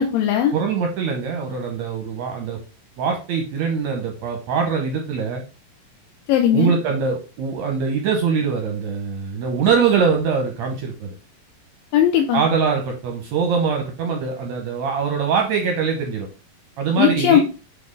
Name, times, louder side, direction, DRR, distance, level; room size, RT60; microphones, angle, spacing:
voice 1, 0.0-0.5 6.3-6.7 11.9-12.4 17.0-17.4, left 10 dB, 80° left, 4 dB, 2.3 m, -17 dB
voice 2, 0.5-2.6 3.0-5.4 6.5-11.1 12.3-16.3 16.8-17.4, right 6 dB, 75° right, 3 dB, 1.7 m, -22 dB
7.7 x 3.3 x 3.8 m, 0.33 s
omnidirectional pair, 4.2 m